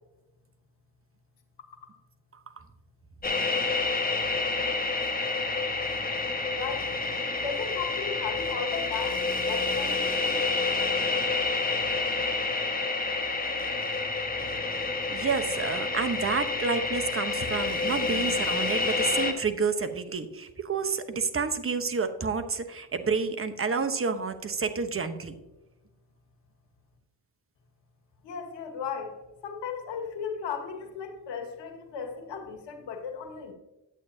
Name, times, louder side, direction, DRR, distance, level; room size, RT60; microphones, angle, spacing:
sound 1, 3.2-19.3, left 3 dB, 20° left, 1.3 m, -28 dB
voice 1, 6.5-6.9 7.2-10.4 14.7-15.2 28.2-29.1 29.4-33.5, left 6 dB, 65° left, 5 dB, 1.7 m, -36 dB
voice 2, 15.1-25.3, right 5 dB, 30° right, 9 dB, 1.0 m, -29 dB
9.9 x 8.3 x 2.8 m, 1.1 s
supercardioid pair, 60°, 46 cm